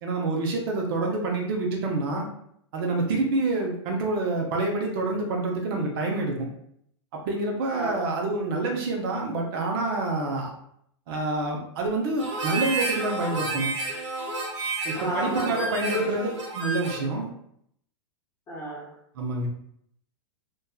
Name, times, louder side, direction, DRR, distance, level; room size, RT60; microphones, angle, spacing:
voice 1, 0.0-2.2 2.7-6.3 7.1-10.5 11.1-13.7 14.8-16.3 16.5-17.3 19.1-19.5, right 2 dB, 55° right, 0 dB, 0.6 m, -27 dB
voice 2, 7.7-8.0 15.0-16.1 18.5-18.9, equal, 20° left, -4 dB, 0.9 m, -31 dB
Harmonica, 12.2-17.1, right 3 dB, 85° right, 0.8 m, -31 dB
2.6 x 2.3 x 2.3 m, 0.70 s
hypercardioid pair, 130°, 15 cm